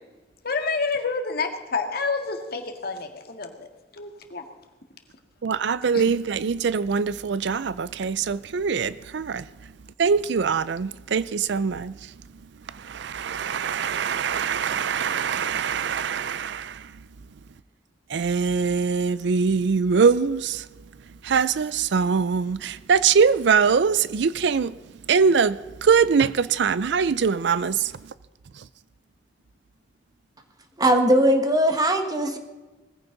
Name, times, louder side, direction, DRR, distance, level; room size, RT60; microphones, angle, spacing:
voice 1, 0.4-3.7 3.9-4.4 5.9-6.1, left 4 dB, 55° left, 1.9 m, -28 dB
voice 2, 5.4-9.4 10.0-11.9 12.8-16.8 18.1-20.6 21.2-24.7 25.1-27.9, right 6 dB, 65° right, 0.5 m, -23 dB
voice 3, 30.8-32.4, right 1 dB, 20° right, 1.6 m, -19 dB
20.0 x 15.0 x 4.0 m
head